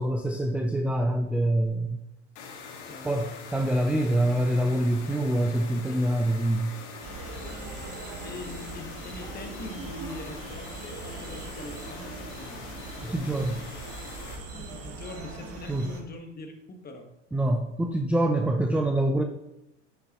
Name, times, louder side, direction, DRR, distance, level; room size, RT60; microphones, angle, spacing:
voice 1, 0.0-2.0 3.0-6.7 13.0-13.7 15.7-15.9 17.3-19.2, right 1 dB, 5° right, 5 dB, 0.4 m, -25 dB
sound 1, 2.4-14.4, left 5 dB, 70° left, 1.9 m, -43 dB
voice 2, 2.9-3.3 7.4-7.6 8.2-12.8 14.5-17.1, left 2 dB, 25° left, 4 dB, 1.4 m, -42 dB
sound 2, 7.0-16.0, right 3 dB, 40° right, 1.5 m, -41 dB
9.1 x 6.9 x 3.0 m, 0.90 s
hypercardioid pair, 90°, 35 cm